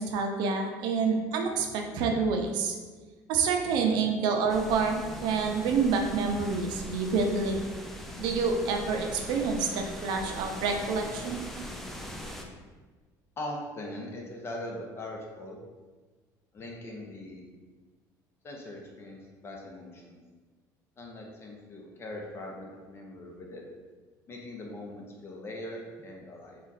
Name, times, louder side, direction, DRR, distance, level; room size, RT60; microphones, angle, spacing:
voice 1, 0.0-2.7 3.3-5.0 5.2-7.6 8.2-11.4, right 5 dB, 75° right, 3 dB, 0.6 m, -27 dB
sound 1, 4.5-12.5, equal, 5° left, 0.4 m, -41 dB
voice 2, 13.4-15.6 16.5-17.4 18.4-20.2 21.0-23.6 24.3-26.6, left 1 dB, 30° left, 0 dB, 0.8 m, -41 dB
4.0 x 2.4 x 4.0 m, 1.3 s
cardioid pair, 125°, 8 cm